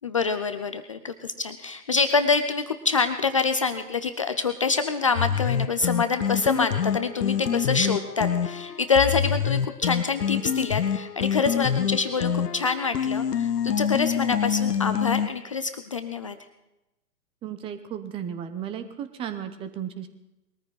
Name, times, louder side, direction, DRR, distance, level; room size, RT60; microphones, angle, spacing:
voice 1, 0.0-16.4, left 5 dB, 20° left, 9 dB, 0.5 m, -26 dB
sound 1, 5.2-15.3, left 8 dB, 70° left, 1.0 m, -26 dB
voice 2, 17.4-20.1, right 9 dB, 10° right, 10 dB, 0.8 m, -34 dB
21.5 x 14.0 x 4.0 m, 0.93 s
figure-of-eight pair, 125°, 49 cm